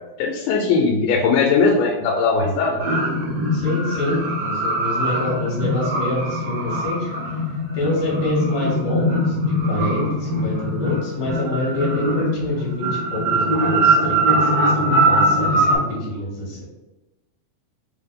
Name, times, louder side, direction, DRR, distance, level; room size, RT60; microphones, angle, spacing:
voice 1, 0.2-2.8, left 4 dB, 85° left, 0 dB, 2.0 m, -19 dB
sound 1, 2.8-15.8, right 1 dB, 65° right, 1.6 m, -21 dB
voice 2, 3.5-7.4 7.7-16.6, left 1 dB, 55° left, -4 dB, 2.1 m, -27 dB
4.9 x 2.0 x 3.5 m, 1.1 s
omnidirectional pair, 3.6 m